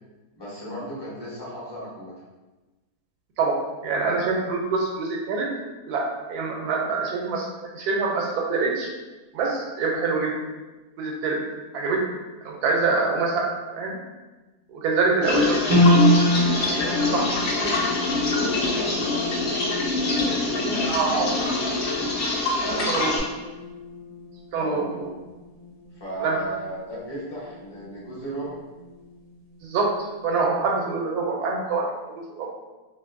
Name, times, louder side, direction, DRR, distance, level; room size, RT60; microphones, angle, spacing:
voice 1, 0.4-2.1 15.2-15.7 16.5-22.1 22.6-23.3 24.6-25.1 25.9-28.6, right 1 dB, 25° left, -8 dB, 0.6 m, -35 dB
voice 2, 3.8-5.5 5.9-8.9 9.3-10.3 11.0-11.4 11.7-12.0 12.4-13.9 14.7-15.6 16.7-17.3 20.9-21.3 22.9-23.1 24.5-24.8 26.2-26.4 29.6-29.9 30.2-32.5, right 4 dB, 85° right, 0 dB, 1.1 m, -25 dB
sound 1, 15.2-23.2, left 3 dB, 60° left, 0.7 m, -25 dB
sound 2, 15.7-28.1 28.4-29.3 29.8-29.9, equal, 55° right, 0.4 m, -27 dB
2.7 x 2.5 x 2.5 m, 1.2 s
omnidirectional pair, 1.6 m